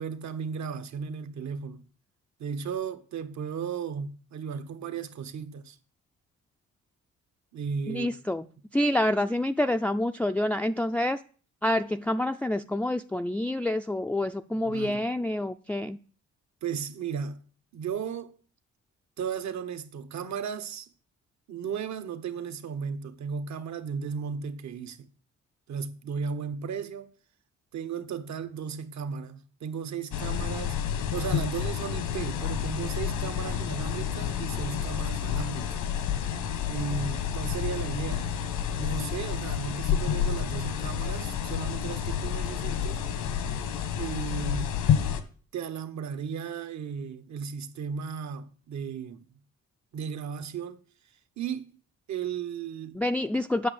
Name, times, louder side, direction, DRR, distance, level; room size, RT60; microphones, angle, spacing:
voice 1, 0.0-1.8 2.4-5.8 7.5-8.2 14.5-15.1 16.6-17.4 17.7-18.4 19.2-20.9 21.5-25.1 25.7-27.1 27.7-30.8 31.1-35.8 36.7-38.3 38.8-43.0 44.0-44.7 45.5-49.2 49.9-50.8 51.4-51.7 52.1-53.0, right 6 dB, 65° right, 1.3 m, -35 dB
voice 2, 7.9-8.4 8.7-11.2 11.6-16.0 53.0-53.7, left 1 dB, 5° left, 0.4 m, -27 dB
sound 1, 30.1-45.2, left 8 dB, 85° left, 1.5 m, -29 dB
8.6 x 6.2 x 8.4 m
cardioid pair, 90°, 30 cm